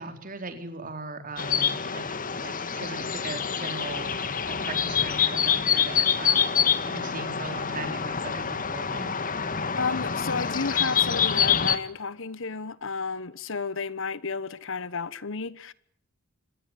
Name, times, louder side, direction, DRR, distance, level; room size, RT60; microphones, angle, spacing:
voice 1, 0.0-2.2 2.4-4.2 4.5-6.6 6.8-9.1, right 3 dB, 40° right, 4.5 m, -38 dB
sound 1, 1.4-11.8, left 7 dB, 40° left, 1.9 m, -26 dB
voice 2, 9.8-15.7, left 4 dB, 65° left, 1.2 m, -32 dB
26.0 x 19.5 x 9.4 m
head